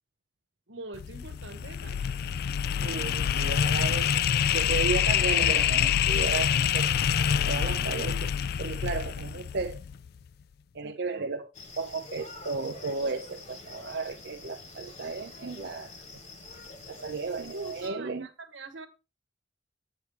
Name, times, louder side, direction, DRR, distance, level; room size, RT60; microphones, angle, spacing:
voice 1, 0.7-2.1 10.8-11.2 17.4-18.9, right 3 dB, 90° right, 1.3 m, -43 dB
sound 1, 0.9-10.1, left 9 dB, 55° left, 0.4 m, -26 dB
voice 2, 2.8-4.2 4.5-6.9 7.4-8.3 8.6-9.8 10.7-11.5 11.8-15.9 16.9-18.3, right 4 dB, 65° right, 0.6 m, -34 dB
sound 2, 11.5-17.9, left 3 dB, 40° left, 1.5 m, -46 dB
8.5 x 8.0 x 3.3 m
head